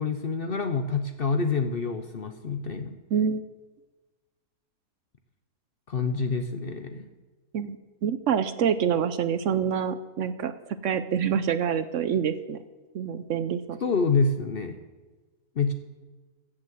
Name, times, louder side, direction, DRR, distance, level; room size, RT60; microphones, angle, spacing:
voice 1, 0.0-3.0 5.9-7.1 13.8-14.8 15.6-15.7, left 4 dB, 50° left, 7 dB, 0.7 m, -27 dB
voice 2, 3.1-3.4 7.5-7.8 8.0-10.5 10.8-12.6 12.9-13.8, right 8 dB, 65° right, 12 dB, 0.8 m, -26 dB
15.5 x 6.2 x 7.6 m, 1.3 s
omnidirectional pair, 1.7 m